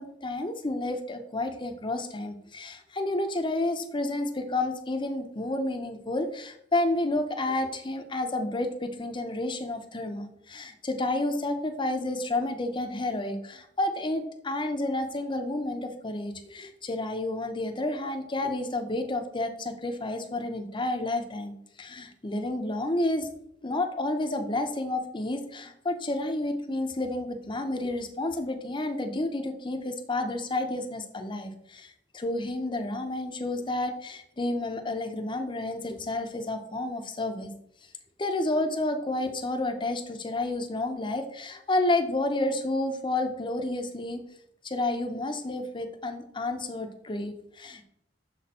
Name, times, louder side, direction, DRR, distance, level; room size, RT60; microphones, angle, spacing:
voice 1, 0.0-23.3 23.6-37.5 38.2-44.2 44.6-47.8, left 2 dB, 25° left, 6 dB, 0.7 m, -30 dB
6.6 x 4.3 x 4.2 m, 0.74 s
head